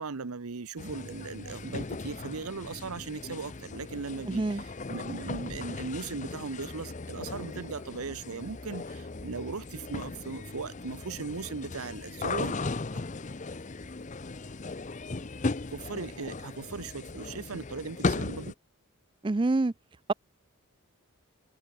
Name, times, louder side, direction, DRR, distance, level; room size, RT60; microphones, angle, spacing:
voice 1, 0.0-12.5 12.9-13.0 15.7-18.5, right 4 dB, 80° right, 0.8 m, -38 dB
sound 1, 0.8-18.5, left 3 dB, 35° left, 0.7 m, -37 dB
voice 2, 4.3-4.6 19.2-19.7, right 2 dB, 20° right, 0.4 m, -26 dB
head